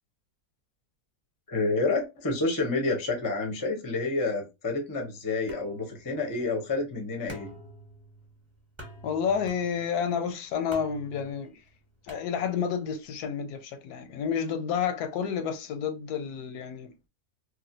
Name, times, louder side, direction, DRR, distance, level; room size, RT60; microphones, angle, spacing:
voice 1, 1.5-7.5, left 3 dB, 25° left, 0.4 m, -29 dB
sound 1, 5.5-12.9, right 1 dB, 20° right, 0.9 m, -49 dB
voice 2, 9.0-11.6 12.0-16.9, left 7 dB, 90° left, 1.1 m, -30 dB
3.1 x 2.4 x 2.5 m
omnidirectional pair, 1.6 m